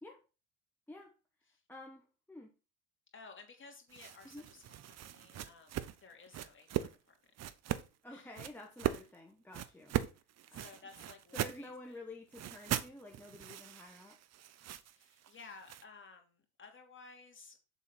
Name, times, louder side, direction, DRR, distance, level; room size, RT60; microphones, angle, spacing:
voice 1, 1.7-2.5 4.3-4.4 8.0-10.0 10.5-10.6 11.3-14.2, left 2 dB, 5° left, 0 dB, 1.3 m, -50 dB
voice 2, 3.1-7.3 8.1-8.3 10.5-12.1 14.9-17.6, left 4 dB, 25° left, 3 dB, 2.9 m, -56 dB
sound 1, 3.9-7.0 7.4-7.9 8.3-9.1 9.5-11.7 12.3-15.8, right 11 dB, 35° right, 0.7 m, -39 dB
7.3 x 3.9 x 5.8 m, 0.31 s
hypercardioid pair, 80°, 44 cm